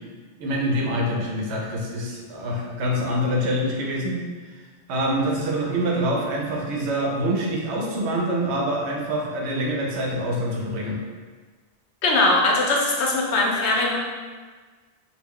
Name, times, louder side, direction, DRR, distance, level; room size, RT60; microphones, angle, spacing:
voice 1, 0.4-4.2 4.5-4.6 4.9-11.0, equal, 85° right, -1 dB, 0.9 m, -25 dB
voice 2, 12.0-14.0, left 2 dB, 90° left, -1 dB, 0.9 m, -20 dB
2.4 x 2.1 x 3.5 m, 1.4 s
omnidirectional pair, 1.1 m